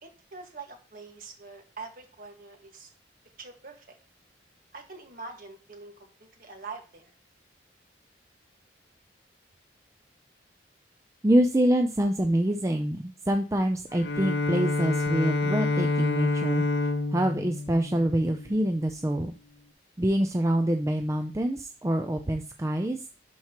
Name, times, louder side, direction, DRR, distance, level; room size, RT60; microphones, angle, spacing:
voice 1, 0.0-2.9 3.4-4.0 4.7-7.1, right 4 dB, 45° right, 3 dB, 1.7 m, -44 dB
voice 2, 11.2-16.6 17.1-19.3 20.0-23.1, right 1 dB, 15° right, 5 dB, 0.4 m, -26 dB
Bowed string instrument, 13.9-18.9, left 2 dB, 70° left, 0.7 m, -28 dB
11.5 x 4.6 x 3.0 m, 0.36 s
head